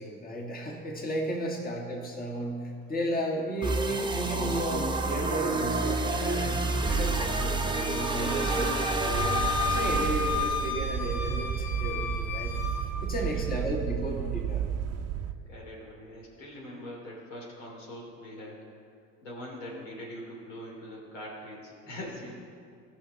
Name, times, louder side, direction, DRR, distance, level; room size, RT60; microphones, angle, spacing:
voice 1, 0.0-6.6 6.9-9.4 9.7-12.6 13.0-14.6, equal, 25° left, 0 dB, 1.8 m, -34 dB
sound 1, 3.6-10.7, right 3 dB, 10° right, 0.9 m, -29 dB
Wind instrument woodwind instrument, 7.7-12.9, left 5 dB, 45° left, 1.2 m, -33 dB
sound 2, 9.1-15.3, right 9 dB, 40° right, 0.7 m, -32 dB
voice 2, 12.9-13.4 15.2-18.6 19.2-22.3, left 1 dB, 85° left, -3 dB, 3.1 m, -43 dB
15.5 x 5.8 x 5.3 m, 2.3 s
hypercardioid pair, 75°, 38 cm